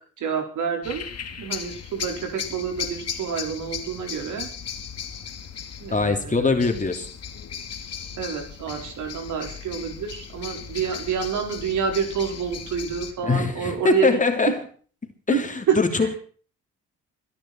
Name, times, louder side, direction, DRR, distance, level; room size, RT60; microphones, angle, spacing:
voice 1, 0.2-1.0 1.4-4.5 5.8-6.6 8.2-14.2 15.3-15.4 15.7-16.1, right 7 dB, 75° right, 4 dB, 5.0 m, -28 dB
sound 1, 0.8-13.1, left 7 dB, 55° left, 2.5 m, -36 dB
voice 2, 5.9-7.1 13.2-14.6 15.3-16.2, left 4 dB, 25° left, 5 dB, 3.0 m, -22 dB
23.5 x 10.5 x 4.5 m, 0.42 s
cardioid pair, 90°, 30 cm